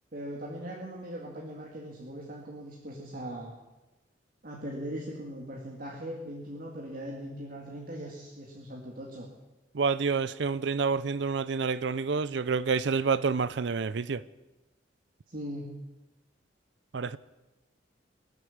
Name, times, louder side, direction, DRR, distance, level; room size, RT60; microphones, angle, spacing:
voice 1, 0.1-3.5 4.4-9.3 15.3-15.8, equal, 50° right, 2.2 m, -40 dB
voice 2, 9.7-14.2 16.9-17.2, right 5 dB, 70° right, 0.5 m, -28 dB
24.0 x 8.1 x 7.3 m
head